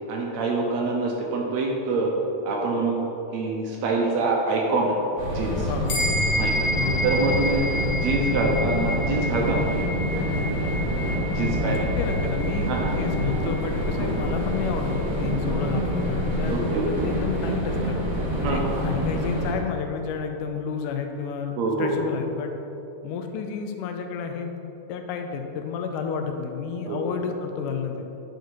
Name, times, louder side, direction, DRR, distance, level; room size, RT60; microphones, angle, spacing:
voice 1, 0.1-2.1 2.4-3.0 3.3-5.0 5.3-5.7 6.3-6.7 7.0-7.6 7.9-9.9 11.3-11.8 12.7-12.9 14.0-14.1 16.5-16.9 18.4-19.0 21.6-21.9 26.9-27.0, right 3 dB, 75° right, -1 dB, 1.8 m, -25 dB
sound 1, 5.2-19.5, equal, 40° right, 1.4 m, -26 dB
voice 2, 5.6-6.0 6.7-7.0 11.3-18.0 18.4-22.5 23.0-24.6 24.9-28.0, left 6 dB, 85° left, 5 dB, 2.2 m, -31 dB
sound 2, 5.9-15.6, equal, 65° left, 1.8 m, -31 dB
9.1 x 4.7 x 4.6 m, 3.0 s
omnidirectional pair, 3.6 m